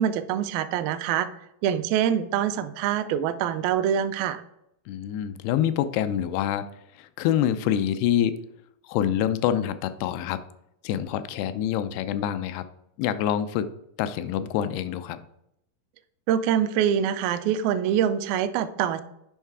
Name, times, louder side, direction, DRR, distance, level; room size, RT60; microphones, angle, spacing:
voice 1, 0.0-1.3 1.6-4.4 16.3-19.0, right 9 dB, 80° right, 9 dB, 2.2 m, -25 dB
voice 2, 4.9-6.7 7.0-8.4 8.8-10.4 10.8-12.7 13.0-13.7 14.0-15.2, left 10 dB, 90° left, 11 dB, 2.7 m, -26 dB
9.2 x 5.5 x 4.7 m, 0.79 s
omnidirectional pair, 4.5 m